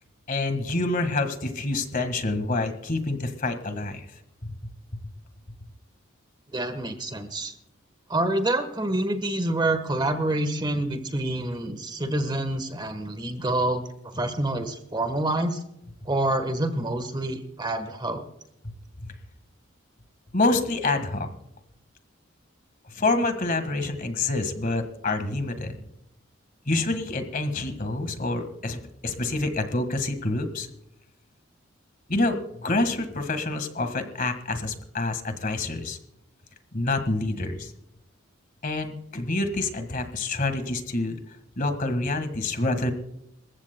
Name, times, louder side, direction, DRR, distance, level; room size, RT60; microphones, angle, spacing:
voice 1, 0.3-4.1 4.4-4.6 20.3-21.3 22.9-25.9 26.7-30.7 32.1-36.0 36.7-37.7 38.6-41.2 41.6-42.9, left 2 dB, 45° left, 8 dB, 1.7 m, -27 dB
voice 2, 6.5-7.5 8.1-13.8 14.1-15.6 16.0-18.2, right 1 dB, 20° right, 9 dB, 1.3 m, -27 dB
28.0 x 15.0 x 2.2 m, 0.81 s
head